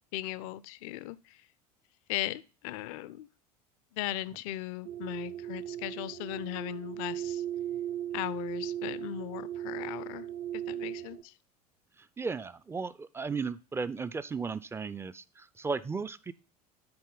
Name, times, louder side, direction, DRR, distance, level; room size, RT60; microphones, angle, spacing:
voice 1, 0.0-1.4 2.1-3.3 3.9-7.4 8.1-10.3 10.5-11.3, left 15 dB, 60° left, 0.5 m, -38 dB
sound 1, 4.8-11.2, right 11 dB, 55° right, 0.6 m, -37 dB
voice 2, 12.0-16.3, right 4 dB, 15° right, 0.3 m, -35 dB
9.6 x 4.1 x 3.8 m
hypercardioid pair, 75°, 20 cm